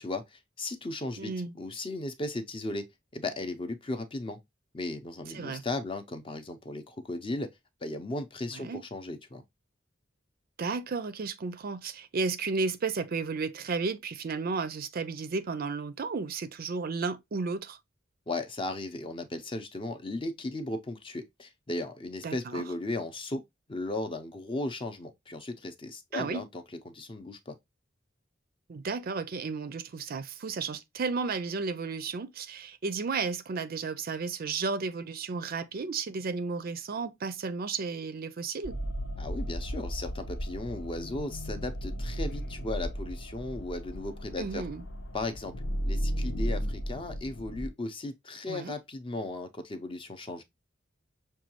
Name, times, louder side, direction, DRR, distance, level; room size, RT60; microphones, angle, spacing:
voice 1, 0.0-2.9 3.1-4.4 4.7-7.5 7.8-9.4 18.3-23.4 23.7-27.5 39.2-44.6 45.1-45.5 45.9-50.4, left 2 dB, 25° left, 0.6 m, -36 dB
voice 2, 1.2-1.5 5.3-5.6 8.5-8.8 10.6-17.8 22.2-22.6 26.1-26.4 28.7-38.8 44.4-44.8 48.5-48.8, right 4 dB, 50° right, 0.4 m, -33 dB
sound 1, 38.6-47.7, equal, 65° left, 0.8 m, -35 dB
6.1 x 2.3 x 2.9 m
head